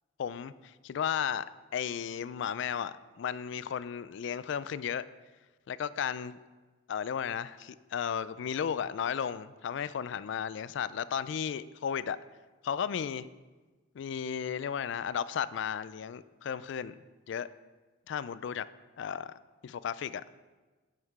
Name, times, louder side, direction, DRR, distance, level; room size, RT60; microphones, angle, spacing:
voice 1, 0.2-1.4 1.7-5.0 5.7-6.4 6.9-12.2 12.6-13.3 14.0-16.9 17.3-17.5 18.1-18.7 19.0-19.3 19.6-20.2, left 8 dB, 60° left, 16 dB, 0.3 m, -34 dB
9.2 x 5.7 x 4.7 m, 1.3 s
head